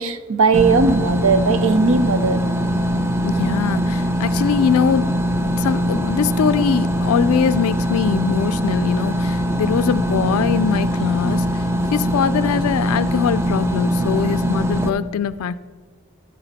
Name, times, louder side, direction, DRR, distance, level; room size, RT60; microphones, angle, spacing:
voice 1, 0.0-2.4, right 4 dB, 70° right, 11 dB, 0.6 m, -18 dB
sound 1, 0.5-14.9, equal, 10° right, 0.4 m, -21 dB
voice 2, 3.2-11.6 11.9-15.6, left 7 dB, 80° left, 15 dB, 0.3 m, -22 dB
14.0 x 6.4 x 4.1 m, 1.4 s
head